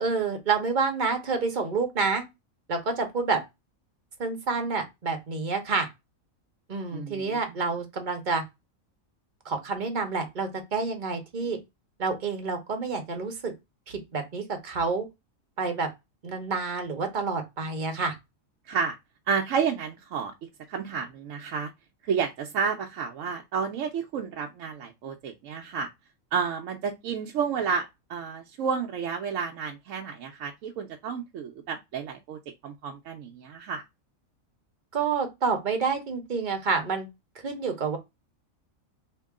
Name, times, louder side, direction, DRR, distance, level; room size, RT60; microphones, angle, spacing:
voice 1, 0.0-2.2 2.7-3.4 4.2-5.9 6.7-8.4 9.4-11.6 12.0-13.5 13.9-15.1 15.6-15.9 16.2-18.1 34.9-37.1 37.4-38.0, right 4 dB, 40° right, 0.8 m, -28 dB
voice 2, 6.9-7.4 18.7-18.9 19.3-20.3 20.7-21.7 22.0-25.9 26.3-33.8, right 6 dB, 75° right, 0.9 m, -31 dB
2.9 x 2.9 x 3.5 m
omnidirectional pair, 1.4 m